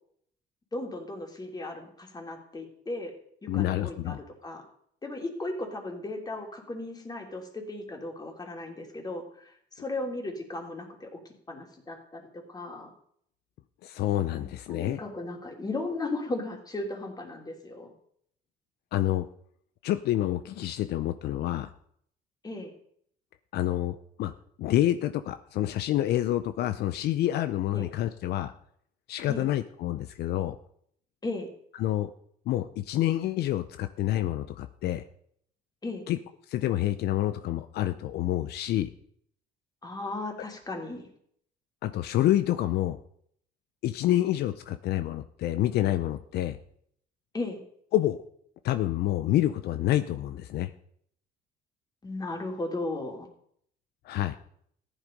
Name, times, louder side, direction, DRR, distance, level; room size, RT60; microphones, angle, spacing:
voice 1, 0.7-3.1 3.4-4.6 5.0-11.2 11.5-12.9 14.3-17.9 22.4-22.7 27.7-27.9 29.3-29.5 31.2-31.5 35.8-36.1 39.8-41.1 47.3-47.6 52.0-53.3, left 2 dB, 25° left, 2 dB, 3.2 m, -36 dB
voice 2, 3.5-4.2 13.8-15.0 18.9-19.3 19.8-21.7 23.5-24.3 24.6-28.5 29.1-30.6 31.8-32.1 32.5-35.0 36.1-36.2 36.5-38.9 41.8-43.0 43.8-46.6 47.9-48.2 48.6-50.7 54.0-54.4, left 13 dB, 75° left, 11 dB, 0.7 m, -28 dB
14.5 x 10.5 x 5.3 m, 0.66 s
cardioid pair, 110°, 17 cm